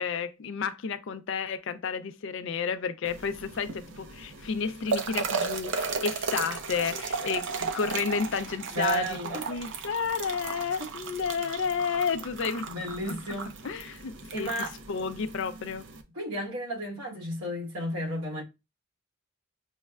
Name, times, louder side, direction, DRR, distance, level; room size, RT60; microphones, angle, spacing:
voice 1, 0.0-12.6 13.6-15.9, left 6 dB, 60° left, 0.4 m, -31 dB
sound 1, 3.1-16.0, right 5 dB, 60° right, 0.5 m, -35 dB
voice 2, 8.7-9.6 10.8-10.9 12.6-13.5 14.3-14.7 16.1-18.4, right 1 dB, 85° right, 1.2 m, -33 dB
6.2 x 2.1 x 2.3 m
head